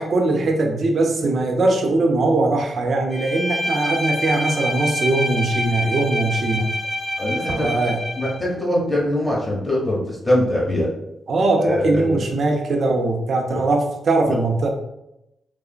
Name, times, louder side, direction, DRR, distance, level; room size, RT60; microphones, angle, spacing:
voice 1, 0.0-6.7 7.5-8.0 11.3-14.7, right 2 dB, 60° right, 4 dB, 0.4 m, -21 dB
Bowed string instrument, 3.1-8.5, left 1 dB, 40° right, 0.8 m, -26 dB
voice 2, 7.2-7.7 8.2-10.9 11.6-12.2 13.5-13.6, left 1 dB, 20° left, -4 dB, 1.0 m, -22 dB
3.3 x 2.0 x 2.2 m, 0.85 s
supercardioid pair, 45°, 0 cm